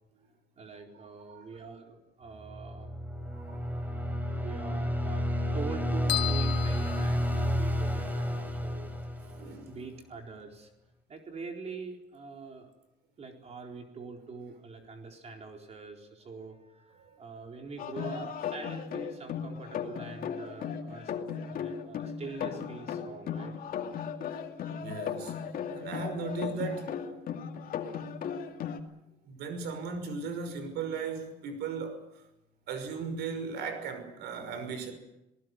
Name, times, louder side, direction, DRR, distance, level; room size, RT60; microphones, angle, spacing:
voice 1, 0.6-2.9 4.3-10.7 11.1-12.7 13.2-21.1 21.4-23.5, right 4 dB, 40° right, 4.1 m, -44 dB
sound 1, 2.4-9.8, equal, 10° right, 4.5 m, -31 dB
voice 2, 3.3-3.8 8.2-8.3 9.4-9.8 17.1-17.2 24.8-25.4 25.7-27.0 29.2-32.2 32.7-34.9, right 5 dB, 80° right, 5.8 m, -37 dB
sound 2, 6.1-7.9, left 15 dB, 90° left, 1.5 m, -35 dB
sound 3, 17.8-28.8, left 7 dB, 60° left, 2.5 m, -37 dB
27.0 x 19.0 x 7.8 m
cardioid pair, 110°, 17 cm